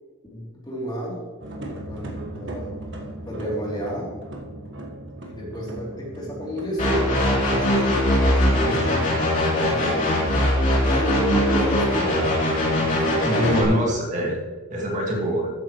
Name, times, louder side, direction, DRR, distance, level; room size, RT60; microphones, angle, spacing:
voice 1, 0.3-1.2 1.9-2.8 3.2-4.1 5.3-10.4 10.8-12.5 12.8-13.9, right 1 dB, 20° left, -5 dB, 3.2 m, -31 dB
sound 1, 1.4-13.9, right 1 dB, 60° right, 1.5 m, -37 dB
sound 2, 6.8-13.6, left 1 dB, 40° left, 3.5 m, -21 dB
voice 2, 8.6-9.0 13.3-14.4 14.7-15.5, equal, 35° right, -2 dB, 2.1 m, -24 dB
13.5 x 9.7 x 3.2 m, 1.4 s
head